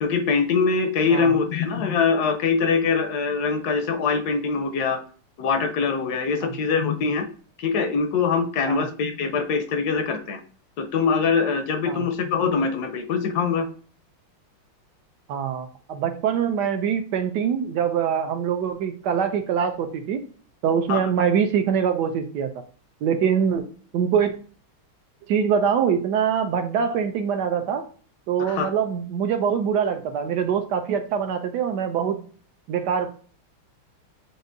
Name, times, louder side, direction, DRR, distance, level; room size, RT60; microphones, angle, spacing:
voice 1, 0.0-5.0 5.4-7.3 7.6-10.4 10.8-13.7 20.9-21.0 28.4-28.7, left 5 dB, 70° left, 8 dB, 0.9 m, -23 dB
voice 2, 15.3-20.2 20.6-22.5 23.0-23.6 23.9-24.4 25.3-27.8 28.3-32.2 32.7-33.1, right 7 dB, 75° right, 7 dB, 1.0 m, -24 dB
7.7 x 2.6 x 2.6 m, 0.42 s
omnidirectional pair, 2.3 m